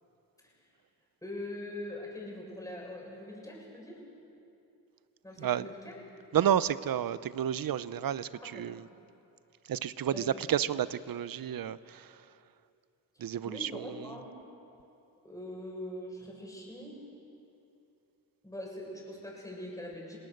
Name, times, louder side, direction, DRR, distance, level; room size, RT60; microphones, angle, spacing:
voice 1, 0.4-0.7 1.2-4.0 5.2-6.0 8.3-8.7 10.1-10.4 13.1-14.4 15.2-17.0 18.4-20.2, left 1 dB, 10° left, -2 dB, 7.0 m, -43 dB
voice 2, 5.4-5.7 6.3-8.9 9.6-12.4 13.2-14.2, right 10 dB, 60° right, 16 dB, 0.7 m, -31 dB
29.0 x 18.5 x 6.7 m, 2.8 s
cardioid pair, 80°, 38 cm